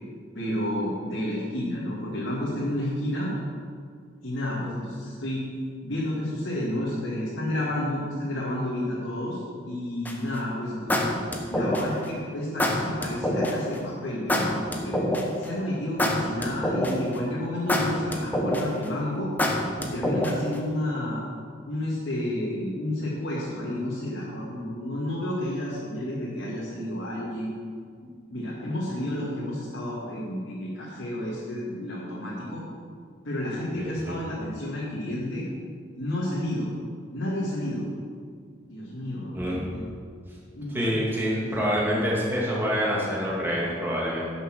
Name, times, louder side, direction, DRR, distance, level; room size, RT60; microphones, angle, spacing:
voice 1, 0.4-3.3 4.2-5.4 5.8-11.1 11.5-15.0 15.4-19.3 19.8-21.2 21.7-27.5 28.3-32.6 33.2-35.5 36.0-36.7 37.1-37.9 38.7-39.8 40.5-40.8 41.0-41.8, left 1 dB, 80° left, -7 dB, 2.1 m, -31 dB
sound 1, 10.0-10.3 10.9-12.0 12.6-13.5 14.3-15.4 16.0-17.1 17.7-18.8 19.4-20.5, left 1 dB, 10° left, 1.0 m, -25 dB
voice 2, 33.8-34.2 39.3-39.6 40.7-44.3, equal, 10° right, -5 dB, 2.3 m, -26 dB
11.0 x 6.7 x 6.2 m, 2.1 s
head